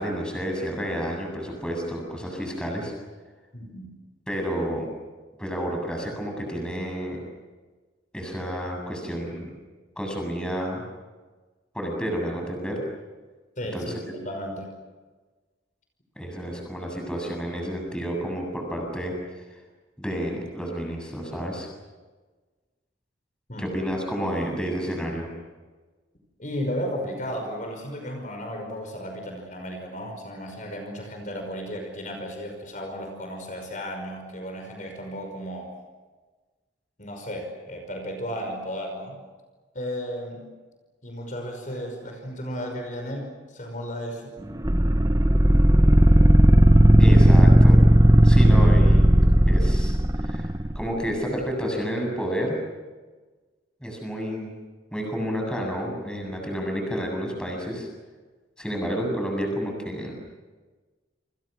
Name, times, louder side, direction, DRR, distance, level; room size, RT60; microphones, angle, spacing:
voice 1, 0.0-2.9 4.3-4.9 5.4-7.2 8.1-9.5 10.0-10.8 11.7-12.8 13.7-14.1 16.2-19.1 20.0-21.7 23.6-25.3 47.0-47.8 48.2-50.0 50.2-52.6 53.8-54.6 54.9-57.9 58.6-60.2, equal, 5° left, 1 dB, 7.6 m, -30 dB
voice 2, 3.5-3.9 13.6-14.7 23.5-23.7 26.4-35.7 37.0-39.2 39.7-40.5 41.0-44.3, equal, 45° left, 3 dB, 5.5 m, -34 dB
sound 1, 44.6-50.8, right 1 dB, 20° right, 1.0 m, -15 dB
29.5 x 27.5 x 6.3 m, 1.3 s
head